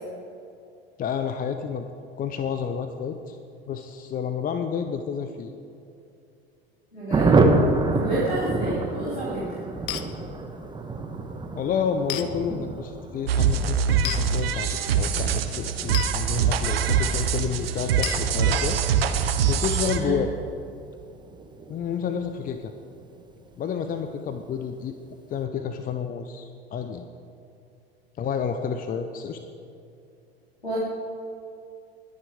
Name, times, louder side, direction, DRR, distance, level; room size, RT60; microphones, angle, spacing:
voice 1, 1.0-1.8 2.2-3.4 3.7-5.5 11.6-18.8 19.5-20.3 21.7-22.7 23.6-25.0 25.3-27.1 28.2-29.4, left 7 dB, 25° left, 8 dB, 0.8 m, -30 dB
voice 2, 6.9-7.3 7.9-9.7 20.0-20.2 30.6-30.8, right 2 dB, 90° left, -10 dB, 3.4 m, -30 dB
Thunder, 7.1-23.2 23.5-23.6 23.9-24.0 24.3-24.7, right 3 dB, 15° right, 1.2 m, -29 dB
sound 1, 9.9-10.1 12.1-12.3 14.0-14.2 15.9-16.1 18.0-18.3, left 13 dB, 55° left, 1.0 m, -30 dB
sound 2, 13.3-20.0, right 7 dB, 70° right, 1.0 m, -24 dB
22.0 x 10.0 x 3.6 m, 2.6 s
figure-of-eight pair, 75°, 31 cm